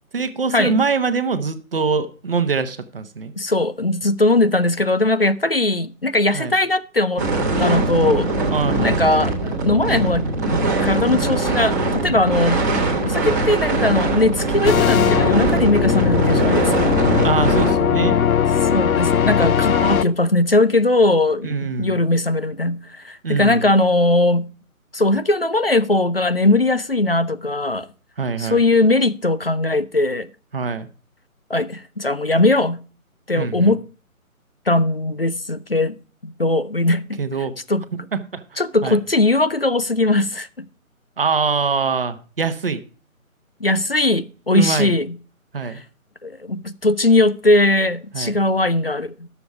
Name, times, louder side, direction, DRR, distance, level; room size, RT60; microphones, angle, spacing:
voice 1, 0.1-3.3 6.3-6.5 8.5-9.0 14.6-14.8 17.2-18.2 21.4-22.0 23.2-23.7 28.2-28.6 30.5-30.9 33.4-33.7 37.2-37.5 38.1-39.0 41.2-42.8 44.5-45.0 45.5-45.8 48.1-48.4, right 5 dB, 40° right, 0.9 m, -23 dB
voice 2, 3.4-7.3 7.6-8.3 8.8-10.3 10.8-12.6 13.0-16.9 18.7-24.5 24.9-27.9 28.4-30.3 31.5-32.8 33.3-33.8 34.7-36.0 36.2-37.0 37.7-37.9 38.6-40.6 43.6-45.1 45.7-45.8 46.2-49.3, left 2 dB, 45° left, 0.4 m, -19 dB
sound 1, 7.2-17.7, right 2 dB, 15° right, 1.1 m, -21 dB
sound 2, 14.7-20.0, left 8 dB, 75° left, 0.7 m, -19 dB
12.0 x 7.0 x 4.6 m
hypercardioid pair, 170°, 42 cm